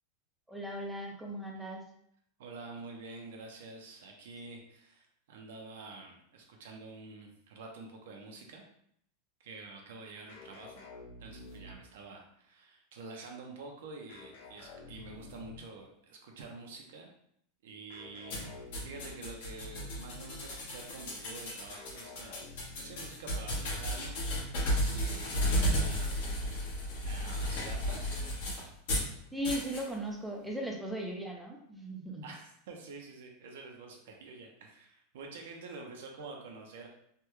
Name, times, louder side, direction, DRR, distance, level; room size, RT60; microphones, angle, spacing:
voice 1, 0.5-1.8 29.3-32.3, equal, 5° right, 1 dB, 0.4 m, -37 dB
voice 2, 2.4-8.6 9.4-10.9 11.2-17.1 17.6-22.4 22.8-24.1 24.6-26.6 27.0-28.0 32.2-36.9, right 3 dB, 75° right, 1 dB, 0.6 m, -48 dB
sound 1, 10.3-12.1 14.1-15.8 17.9-19.4 21.7-23.3, left 3 dB, 75° left, 1.4 m, -50 dB
sound 2, 18.3-29.1 29.4-29.8, equal, 60° left, 1.2 m, -34 dB
3.3 x 2.2 x 3.0 m, 0.70 s
supercardioid pair, 170°, 0 cm